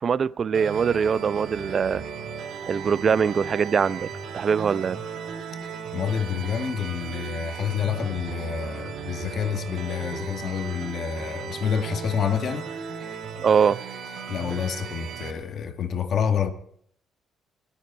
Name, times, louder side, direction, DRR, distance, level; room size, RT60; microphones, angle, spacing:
voice 1, 0.0-2.0 2.7-4.1 4.3-5.0 13.4-13.8, right 6 dB, 50° right, 0.6 m, -22 dB
sound 1, 0.5-15.3, right 6 dB, 75° right, 4.0 m, -36 dB
voice 2, 5.9-12.7 14.3-16.5, left 7 dB, 60° left, 2.1 m, -28 dB
29.5 x 10.0 x 4.2 m
cardioid pair, 90°, 0 cm